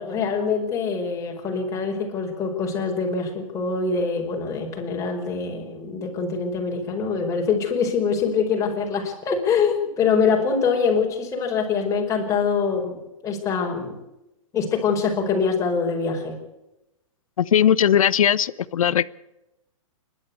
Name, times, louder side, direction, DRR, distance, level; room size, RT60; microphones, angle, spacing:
voice 1, 0.0-13.0 13.2-13.9 14.5-16.4, left 5 dB, 20° left, 0 dB, 5.1 m, -24 dB
voice 2, 17.4-19.1, left 9 dB, 85° left, 19 dB, 0.8 m, -19 dB
28.0 x 12.0 x 8.2 m, 0.93 s
hypercardioid pair, 145°, 17 cm